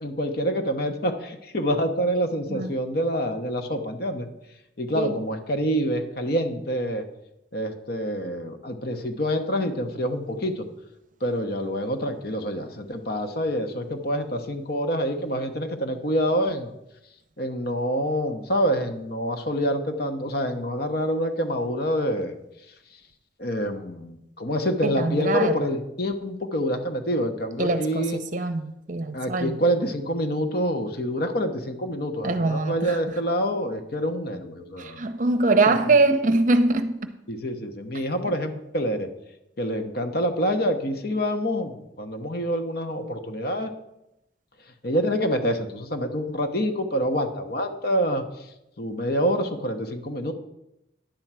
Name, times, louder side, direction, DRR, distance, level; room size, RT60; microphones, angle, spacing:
voice 1, 0.0-4.3 4.8-7.0 7.5-10.6 11.2-16.7 17.4-22.4 23.4-28.2 29.1-35.0 35.6-35.7 37.3-39.1 39.6-43.7 44.8-48.5 48.8-50.3, equal, 55° left, 6 dB, 0.9 m, -26 dB
voice 2, 24.8-25.5 27.6-28.0 28.3-29.6 32.2-33.0 34.8-37.1, right 2 dB, 45° right, 9 dB, 0.7 m, -23 dB
10.5 x 4.5 x 7.4 m, 0.87 s
head